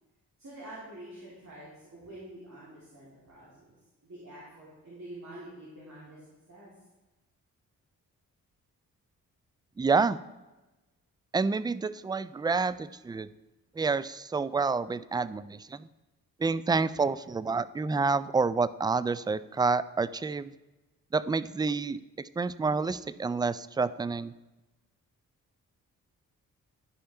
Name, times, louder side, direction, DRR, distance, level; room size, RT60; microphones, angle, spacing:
voice 1, 0.4-3.7 4.0-6.7 9.7-9.8, right 1 dB, 50° right, -8 dB, 3.3 m, -47 dB
voice 2, 9.8-10.2 11.3-13.3 13.8-15.9 16.4-20.5 21.1-24.3, right 4 dB, 10° right, 17 dB, 0.3 m, -28 dB
11.5 x 5.2 x 4.5 m, 1.1 s
supercardioid pair, 45°, 36 cm